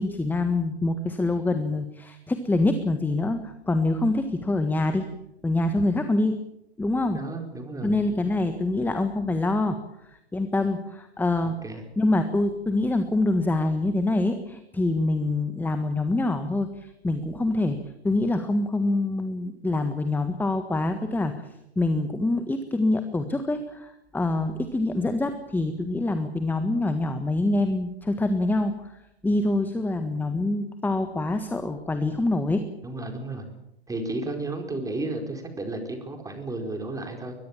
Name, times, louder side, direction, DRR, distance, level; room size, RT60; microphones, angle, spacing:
voice 1, 0.0-5.1 5.4-6.3 6.8-7.2 7.8-9.8 10.3-11.5 12.0-17.8 18.0-21.3 21.7-28.7 29.2-32.6, left 2 dB, 5° left, 8 dB, 1.5 m, -25 dB
voice 2, 7.1-8.0 11.4-11.8 32.8-33.4 33.9-37.3, right 2 dB, 10° right, 4 dB, 4.7 m, -33 dB
22.5 x 20.5 x 7.4 m, 0.85 s
hypercardioid pair, 110°, 32 cm